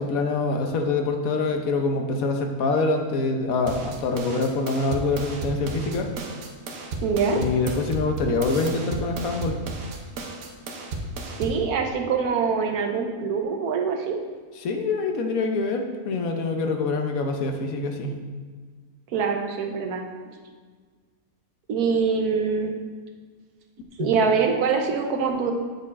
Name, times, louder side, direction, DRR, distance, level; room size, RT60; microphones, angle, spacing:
voice 1, 0.0-6.1 7.3-9.6 14.6-18.2 24.0-24.1, left 3 dB, 70° left, 4 dB, 1.2 m, -25 dB
sound 1, 3.7-11.7, right 2 dB, 70° right, 1.2 m, -33 dB
voice 2, 7.0-7.4 11.4-14.2 19.1-20.3 21.7-22.7 24.0-25.5, right 5 dB, 90° right, 3 dB, 1.3 m, -24 dB
8.5 x 4.5 x 4.2 m, 1.5 s
omnidirectional pair, 1.6 m